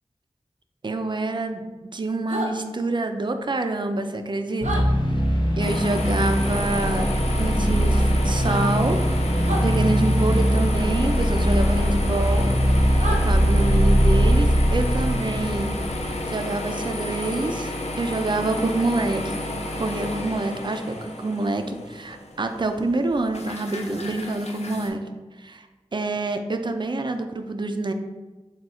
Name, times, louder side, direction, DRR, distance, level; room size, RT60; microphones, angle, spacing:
voice 1, 0.8-4.9 5.6-9.0 9.6-12.5 13.1-15.8 16.3-25.0 25.4-25.7 25.9-27.9, right 2 dB, 40° right, 6 dB, 0.4 m, -27 dB
sound 1, 2.3-2.5 4.6-4.8 6.8-7.0 8.3-8.6 9.4-9.6 11.7-11.9 13.0-13.2, right 1 dB, 80° right, 0.7 m, -30 dB
sound 2, 4.6-16.2, equal, 40° left, 0.8 m, -21 dB
sound 3, 5.6-24.9, left 1 dB, 65° left, 0.5 m, -31 dB
3.7 x 2.3 x 4.3 m, 1.2 s
wide cardioid pair, 50°, 12 cm